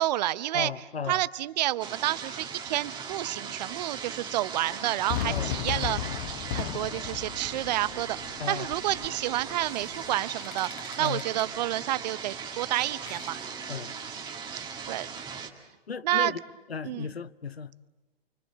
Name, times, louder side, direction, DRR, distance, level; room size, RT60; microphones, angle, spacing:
voice 1, 0.0-0.7 1.1-6.2 6.5-13.4 14.6-15.1 16.0-16.3 16.8-17.1, right 14 dB, 45° right, 0.8 m, -29 dB
voice 2, 0.5-1.2 5.3-5.6 8.4-8.7 11.0-11.2 13.7-13.9 15.9-16.4 16.7-17.8, left 6 dB, 85° left, 0.9 m, -35 dB
sound 1, 1.8-15.5, right 6 dB, 15° right, 2.0 m, -39 dB
Fireworks, 5.1-10.1, left 12 dB, 45° left, 1.0 m, -35 dB
sound 2, 9.2-14.8, left 5 dB, 65° left, 3.5 m, -52 dB
29.0 x 23.5 x 7.4 m
figure-of-eight pair, 115°, 30 cm